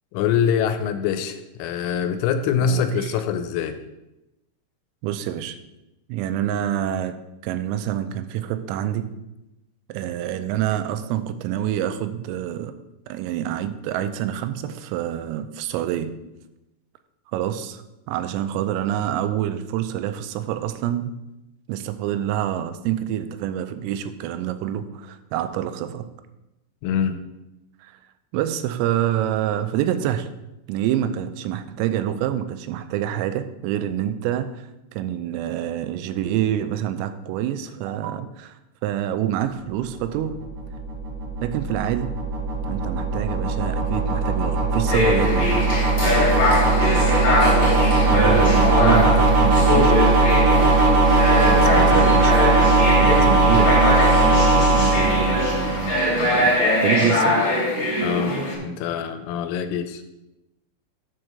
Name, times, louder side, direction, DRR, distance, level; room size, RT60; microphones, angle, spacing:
voice 1, 0.1-3.8 26.8-27.2 46.8-47.0 51.3-52.2 54.3-54.6 58.0-60.0, left 7 dB, 85° left, 9 dB, 3.1 m, -25 dB
voice 2, 2.6-3.1 5.0-5.6 6.1-7.2 7.4-9.1 9.9-12.8 13.1-16.1 17.3-21.1 21.7-26.1 27.8-28.0 28.3-30.3 30.7-40.4 41.4-42.2 42.6-45.7 48.1-50.1 51.4-52.3 53.0-53.9 54.1-56.5 56.8-57.4, right 11 dB, 85° right, 10 dB, 3.2 m, -27 dB
sound 1, 40.1-56.3, right 2 dB, 55° right, 2.2 m, -19 dB
sound 2, 44.9-58.5, left 2 dB, 35° left, 2.7 m, -22 dB
7.8 x 4.7 x 6.5 m, 0.93 s
omnidirectional pair, 5.9 m